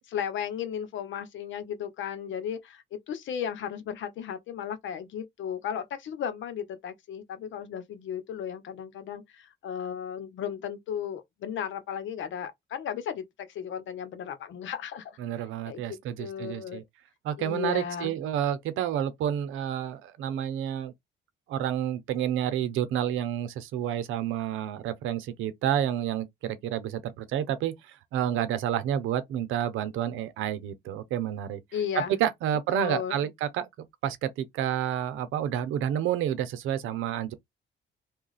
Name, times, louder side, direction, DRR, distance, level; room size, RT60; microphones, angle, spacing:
voice 1, 0.1-15.2 15.7-16.8 17.4-18.2 31.7-32.2 32.7-33.3, left 8 dB, 75° left, 0.9 m, -35 dB
voice 2, 15.2-16.8 17.2-20.9 21.5-31.6 31.9-33.7 34.0-37.3, right 10 dB, 90° right, 0.7 m, -29 dB
2.9 x 2.3 x 4.0 m
cardioid pair, 90°, 20 cm